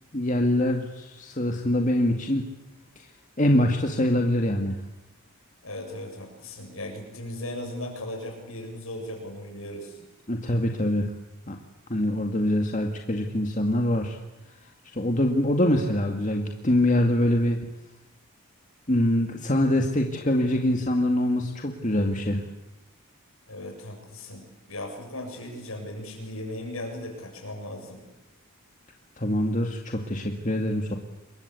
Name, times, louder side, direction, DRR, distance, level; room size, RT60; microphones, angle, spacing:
voice 1, 0.1-2.4 3.4-4.8 10.3-11.1 11.5-11.6 11.9-14.2 14.9-17.6 18.9-22.4 29.2-31.0, left 1 dB, 35° left, 3 dB, 2.2 m, -24 dB
voice 2, 5.6-10.0 23.5-28.0, left 1 dB, 70° left, 3 dB, 7.8 m, -37 dB
27.5 x 23.0 x 8.4 m, 0.95 s
head